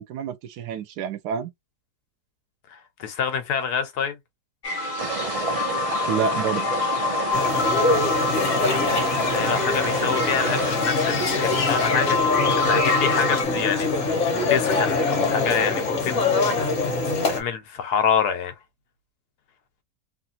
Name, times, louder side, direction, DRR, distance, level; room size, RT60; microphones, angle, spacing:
voice 1, 0.0-1.5 6.1-6.7, right 7 dB, 90° right, 1.2 m, -28 dB
voice 2, 2.7-4.2 8.7-13.9 14.2-17.0 17.3-18.5, left 7 dB, 80° left, 1.3 m, -27 dB
sound 1, 4.6-13.4, left 4 dB, 40° left, 0.7 m, -26 dB
spring-water-stream-snow-walking, 5.0-10.7, right 4 dB, 45° right, 0.4 m, -29 dB
sound 2, 7.3-17.4, left 3 dB, 55° left, 1.3 m, -24 dB
3.1 x 2.5 x 2.7 m
omnidirectional pair, 1.7 m